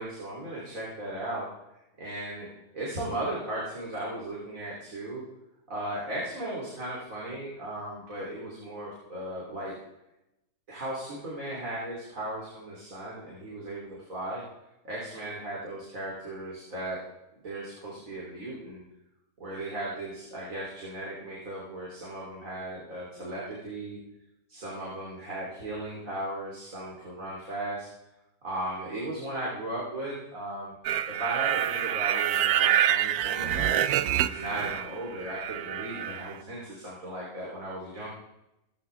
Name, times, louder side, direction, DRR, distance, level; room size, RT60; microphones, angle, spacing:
voice 1, 0.0-1.5 2.0-2.5 2.7-5.2 5.7-9.7 10.7-14.4 14.8-17.0 17.4-18.8 19.4-24.0 24.5-27.9 28.4-30.7 31.1-33.8 34.2-38.1, right 1 dB, 65° right, -5 dB, 3.8 m, -36 dB
sound 1, 30.8-34.9 35.2-36.3, right 11 dB, 85° right, 1.1 m, -27 dB
16.5 x 15.5 x 3.5 m, 0.90 s
omnidirectional pair, 1.6 m